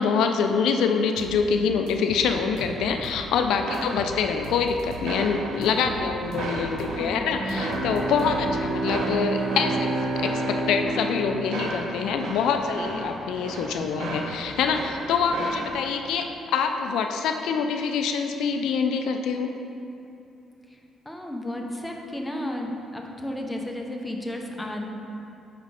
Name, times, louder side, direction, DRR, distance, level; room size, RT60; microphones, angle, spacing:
voice 1, 0.0-19.5, left 6 dB, 85° left, 5 dB, 0.3 m, -25 dB
sound 1, 1.2-1.4 1.9-3.3 3.7-5.2 5.6-7.0 7.5-8.7, right 4 dB, 85° right, 0.5 m, -40 dB
sound 2, 2.1-15.7, right 2 dB, 70° right, 0.9 m, -36 dB
voice 2, 5.7-6.2 6.9-7.4 8.1-8.3 12.7-13.0 20.7-20.8 21.0-24.8, left 1 dB, 10° left, 1 dB, 0.7 m, -34 dB
Bowed string instrument, 7.3-12.6, right 2 dB, 35° right, 0.8 m, -29 dB
5.0 x 4.1 x 4.8 m, 2.8 s
cardioid pair, 90°, 0 cm